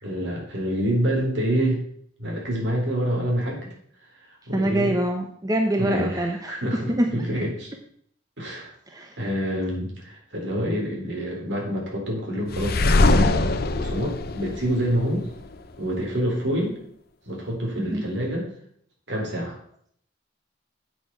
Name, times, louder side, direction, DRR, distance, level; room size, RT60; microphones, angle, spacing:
voice 1, 0.0-1.8 2.2-3.7 4.2-5.0 5.8-7.7 8.4-15.3 15.8-16.8 17.3-18.5 19.1-19.6, equal, 65° right, -1 dB, 3.8 m, -27 dB
voice 2, 4.5-7.1 8.9-9.1 17.8-18.0, right 1 dB, 20° right, 3 dB, 0.8 m, -25 dB
sound 1, 12.5-15.5, left 2 dB, 55° left, 0.7 m, -22 dB
8.2 x 6.8 x 6.0 m, 0.63 s
head